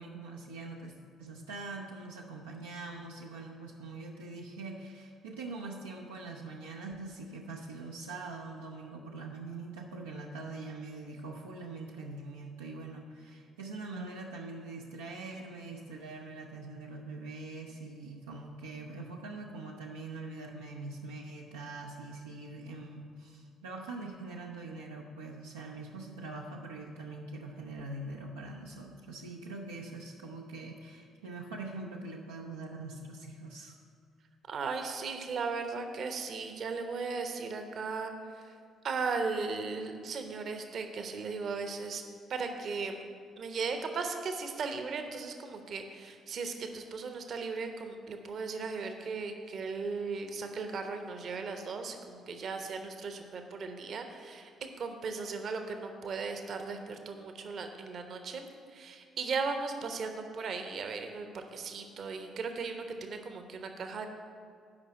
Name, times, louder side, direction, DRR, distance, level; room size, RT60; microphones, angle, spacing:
voice 1, 0.0-33.8, right 3 dB, 80° right, -2 dB, 0.6 m, -43 dB
voice 2, 34.5-38.6 38.8-42.0 42.3-43.0 43.4-64.1, right 4 dB, 50° right, 6 dB, 0.9 m, -37 dB
8.7 x 5.6 x 7.6 m, 2.2 s
figure-of-eight pair, 45°, 0 cm